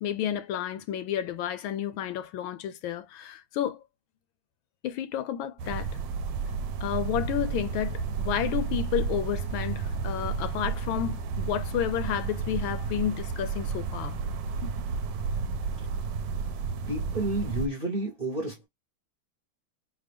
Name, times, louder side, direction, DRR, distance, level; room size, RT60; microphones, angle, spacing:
voice 1, 0.0-3.8 4.8-5.9 6.8-14.2 14.6-14.7, left 10 dB, 75° left, 1.3 m, -31 dB
sound 1, 5.6-17.7, right 5 dB, 70° right, 1.2 m, -32 dB
voice 2, 16.9-18.6, right 1 dB, 45° right, 0.7 m, -30 dB
5.0 x 2.4 x 3.3 m
omnidirectional pair, 2.3 m